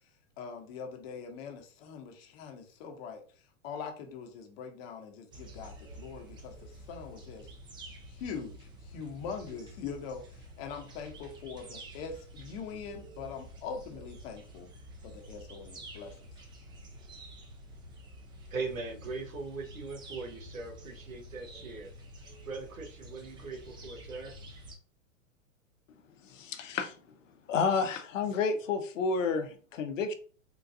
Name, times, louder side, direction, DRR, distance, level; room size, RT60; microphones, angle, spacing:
voice 1, 0.4-7.5 8.1-14.7 15.0-16.1, left 6 dB, 50° left, 4 dB, 1.0 m, -42 dB
sound 1, 5.3-24.8, right 1 dB, 10° right, 0.4 m, -49 dB
voice 2, 18.5-21.9 22.4-24.3, right 4 dB, 85° right, 3 dB, 1.1 m, -40 dB
voice 3, 26.2-26.9 27.5-30.1, left 5 dB, 70° left, 7 dB, 0.8 m, -30 dB
3.8 x 2.4 x 2.6 m, 0.40 s
hypercardioid pair, 115°, 40 cm